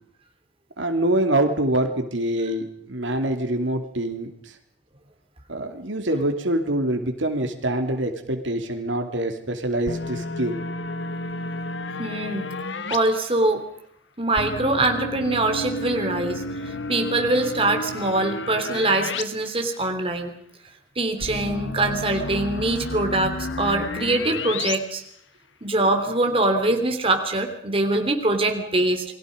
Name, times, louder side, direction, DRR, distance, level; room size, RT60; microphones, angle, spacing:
voice 1, 0.8-4.3 5.5-10.6, right 1 dB, 80° right, 5 dB, 2.8 m, -25 dB
sound 1, 9.9-13.0 14.4-19.2 19.5-19.6 21.2-24.8, left 2 dB, 70° left, 1.4 m, -31 dB
voice 2, 12.0-12.5 12.9-13.7 14.2-16.4 16.9-20.3 21.0-25.0 25.6-29.0, right 2 dB, 30° right, 4 dB, 3.1 m, -23 dB
29.0 x 22.5 x 5.2 m, 0.68 s
head